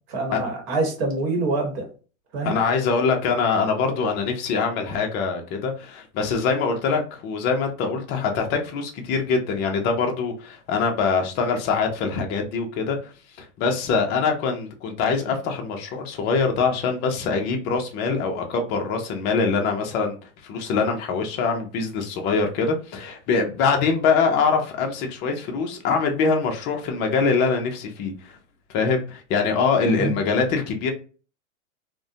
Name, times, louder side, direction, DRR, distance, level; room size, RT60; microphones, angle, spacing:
voice 1, 0.1-1.9 2.3-2.6 29.8-30.2, right 3 dB, 50° right, 1.0 m, -26 dB
voice 2, 2.4-13.1 13.6-20.2 20.4-28.4 28.7-30.9, left 5 dB, 25° left, 0.4 m, -23 dB
2.4 x 2.1 x 2.6 m
hypercardioid pair, 120°, 40 cm